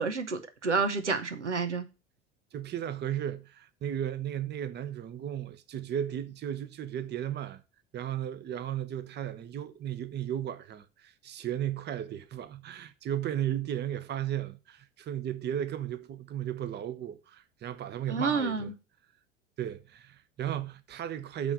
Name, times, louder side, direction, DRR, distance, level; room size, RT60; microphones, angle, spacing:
voice 1, 0.0-1.8 18.1-18.7, right 4 dB, 90° right, 0.8 m, -29 dB
voice 2, 2.5-7.6 7.9-18.7 19.6-21.5, right 10 dB, 30° right, 0.7 m, -35 dB
8.7 x 3.4 x 6.2 m
figure-of-eight pair, 70°, 34 cm